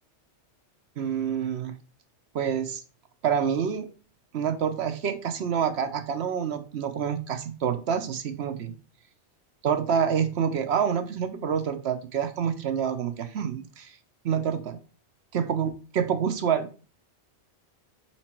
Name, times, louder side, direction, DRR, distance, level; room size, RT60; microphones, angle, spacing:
voice 1, 1.0-1.7 2.3-2.8 3.2-3.9 4.3-8.7 9.6-14.0 14.2-14.8 15.3-16.7, right 7 dB, 65° right, 9 dB, 1.0 m, -27 dB
4.9 x 4.5 x 4.3 m, 0.36 s
omnidirectional pair, 1.2 m